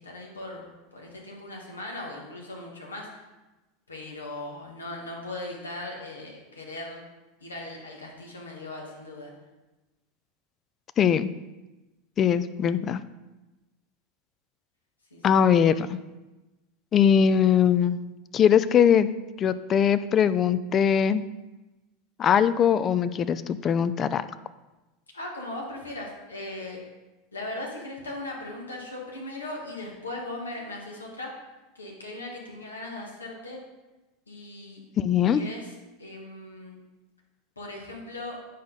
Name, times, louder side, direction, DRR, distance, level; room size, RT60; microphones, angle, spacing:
voice 1, 0.0-3.2 3.9-7.0 7.4-9.3 15.1-15.4 25.1-26.8 27.3-31.3 31.8-33.6 34.3-34.8 35.3-35.7 36.0-36.8 37.6-38.4, left 2 dB, 80° left, -1 dB, 1.6 m, -38 dB
voice 2, 11.0-11.3 12.2-13.0 15.2-16.0 16.9-18.0 18.3-19.1 19.4-21.2 22.2-24.3 35.0-35.4, left 8 dB, 30° left, 14 dB, 0.3 m, -21 dB
8.4 x 5.8 x 3.9 m, 1.1 s
figure-of-eight pair, 80°, 0 cm